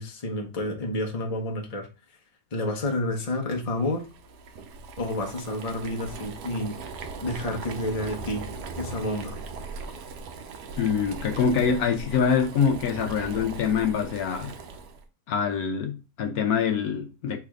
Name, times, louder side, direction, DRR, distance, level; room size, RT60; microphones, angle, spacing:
voice 1, 0.0-1.9 2.5-4.0 5.0-6.8 7.2-8.4 8.8-9.4, left 1 dB, 30° left, 0.9 m, -29 dB
Boiling, 3.8-15.0, right 4 dB, 90° right, 1.2 m, -39 dB
voice 2, 10.8-14.5 15.3-17.4, left 6 dB, 70° left, 1.1 m, -25 dB
3.4 x 3.3 x 4.7 m
omnidirectional pair, 1.7 m